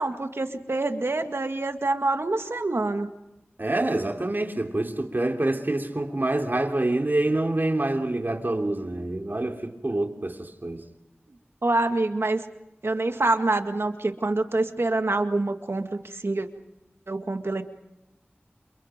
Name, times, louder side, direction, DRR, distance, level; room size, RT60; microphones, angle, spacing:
voice 1, 0.0-3.1 11.6-12.5 12.8-16.5 17.1-17.6, right 2 dB, 75° right, 2.0 m, -26 dB
voice 2, 3.6-10.9, right 2 dB, 50° right, 3.5 m, -26 dB
28.5 x 28.5 x 5.3 m
wide cardioid pair, 40°, 4 cm